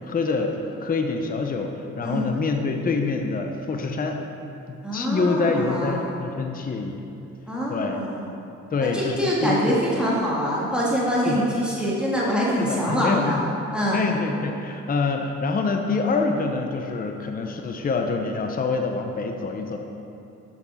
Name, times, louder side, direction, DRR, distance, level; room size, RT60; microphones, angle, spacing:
voice 1, 0.0-4.2 4.9-7.0 7.7-8.0 8.7-9.8 11.2-11.5 12.6-13.4 13.9-19.8, left 4 dB, 30° left, 4 dB, 0.7 m, -26 dB
voice 2, 2.0-2.3 4.8-6.0 7.5-8.3 8.8-13.4 13.7-14.0, equal, 5° right, -6 dB, 1.7 m, -24 dB
7.1 x 6.9 x 5.6 m, 2.8 s
cardioid pair, 90°, 30 cm